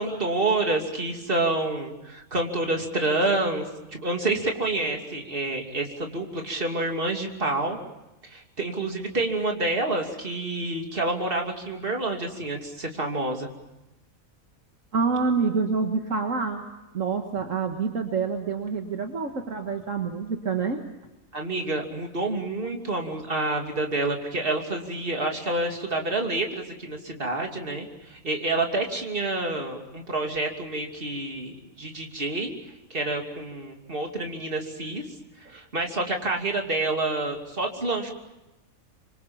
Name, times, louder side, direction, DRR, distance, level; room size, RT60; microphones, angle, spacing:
voice 1, 0.0-3.7 3.9-7.8 8.2-13.5 21.3-32.5 32.9-35.0 35.5-38.1, right 2 dB, 40° right, 2 dB, 3.1 m, -28 dB
voice 2, 14.9-16.6 16.9-20.8, right 5 dB, 65° right, 4 dB, 2.0 m, -27 dB
26.5 x 24.5 x 7.2 m, 1.0 s
omnidirectional pair, 1.5 m